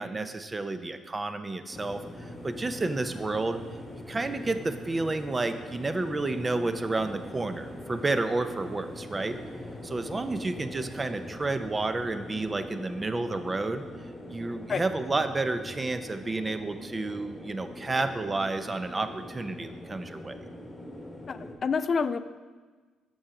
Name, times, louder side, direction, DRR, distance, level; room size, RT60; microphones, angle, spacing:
voice 1, 0.0-3.6 4.1-9.4 9.8-13.8 14.3-20.4, right 2 dB, 25° right, 10 dB, 0.5 m, -31 dB
sound 1, 1.7-21.5, left 1 dB, 20° left, 1.3 m, -42 dB
voice 2, 21.3-22.2, left 5 dB, 45° left, 13 dB, 0.4 m, -28 dB
7.0 x 6.2 x 4.9 m, 1.4 s
cardioid pair, 90°, 0 cm